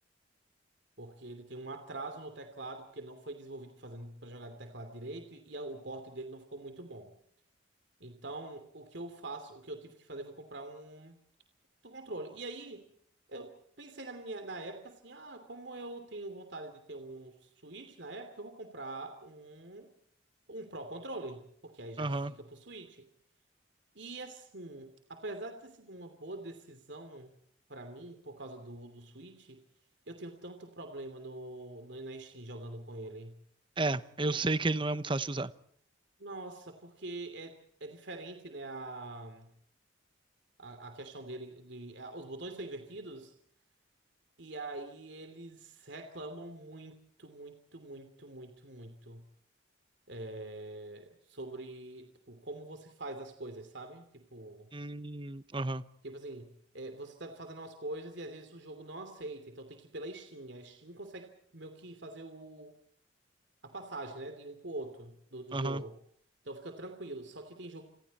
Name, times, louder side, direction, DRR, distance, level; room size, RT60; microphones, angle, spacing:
voice 1, 1.0-7.1 8.0-11.2 11.8-12.8 13.3-19.9 20.5-23.1 23.9-27.3 27.7-29.6 30.1-33.4 34.2-34.4 36.2-37.5 37.8-39.5 40.6-43.3 44.4-49.3 50.1-54.7 56.0-62.7 63.6-66.0 66.4-67.8, right 2 dB, 60° right, 3.0 m, -44 dB
voice 2, 22.0-22.3 33.8-35.5 54.7-55.8 65.5-65.8, right 2 dB, 25° right, 0.9 m, -32 dB
29.5 x 26.5 x 4.3 m
head